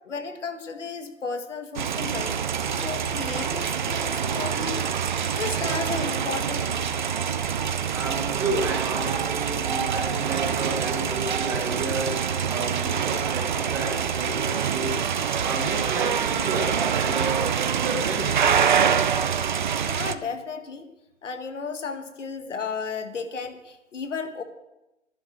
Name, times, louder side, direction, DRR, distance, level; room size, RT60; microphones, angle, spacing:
voice 1, 0.0-2.4 2.7-4.9 5.4-6.8 19.9-20.9 21.2-24.4, left 5 dB, 70° left, 8 dB, 1.8 m, -34 dB
sound 1, 1.8-20.2, right 7 dB, 40° right, 0.6 m, -25 dB
voice 2, 7.9-12.1 12.4-13.4 13.7-15.1 15.4-18.6, right 2 dB, 5° right, 1 dB, 1.1 m, -31 dB
11.5 x 11.0 x 7.4 m, 0.94 s
hypercardioid pair, 160°, 37 cm